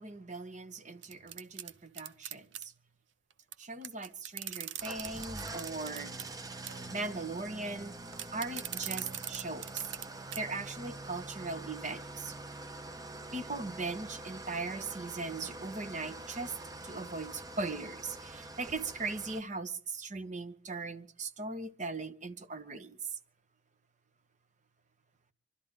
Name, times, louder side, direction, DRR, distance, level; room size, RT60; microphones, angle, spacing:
voice 1, 0.0-2.7 3.6-6.1 6.9-7.9 8.3-9.8 10.4-12.3 13.3-16.5 16.8-23.2, right 3 dB, 40° right, 1.0 m, -39 dB
sound 1, 1.0-2.6 3.5-3.6 3.8-6.3 6.7-6.9 8.1-10.1 10.3-10.4 10.9-11.0, right 11 dB, 85° right, 0.8 m, -41 dB
Engine starting / Idling, 4.8-19.4, right 2 dB, 20° right, 0.8 m, -45 dB
25.5 x 12.5 x 3.7 m
head